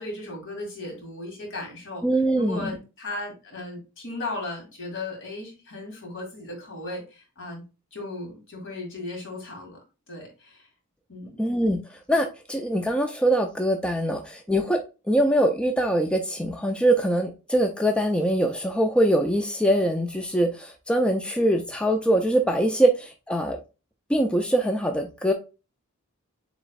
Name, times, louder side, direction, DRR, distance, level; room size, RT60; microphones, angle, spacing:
voice 1, 0.0-2.0 2.3-7.6 7.9-9.8 10.1-10.7 11.1-11.4, left 2 dB, 60° left, 2.0 m, -36 dB
voice 2, 2.0-2.8 11.4-14.8 15.1-23.6 24.1-25.3, right 1 dB, 5° left, 0.5 m, -23 dB
7.5 x 3.0 x 2.3 m
head